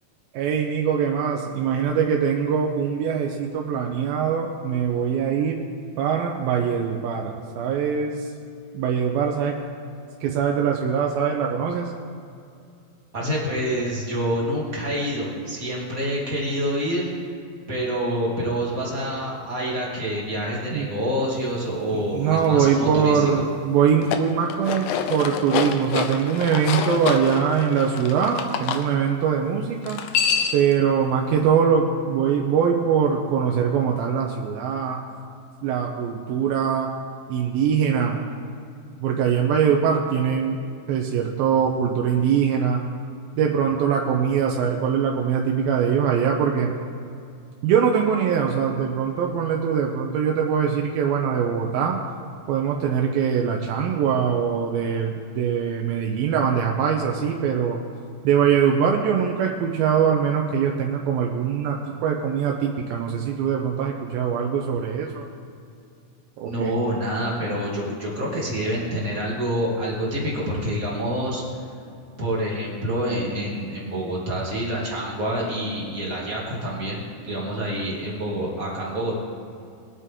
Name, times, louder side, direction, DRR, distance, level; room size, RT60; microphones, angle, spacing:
voice 1, 0.3-5.6 6.0-8.3 8.7-9.6 10.2-11.9 20.7-20.9 21.9-30.0 30.5-35.0 35.6-36.9 37.3-38.2 39.0-40.6 40.9-42.8 43.4-46.7 47.6-52.0 52.5-57.8 58.2-65.3 66.4-66.7, right 7 dB, 85° right, 0 dB, 2.6 m, -22 dB
voice 2, 13.1-17.1 17.7-23.3 66.4-71.4 72.2-77.0 77.2-79.1, equal, 25° right, -4 dB, 2.2 m, -27 dB
sound 1, 23.9-28.8 29.8-30.7, left 7 dB, 75° left, 1.8 m, -27 dB
21.5 x 8.4 x 3.7 m, 2.5 s
omnidirectional pair, 4.2 m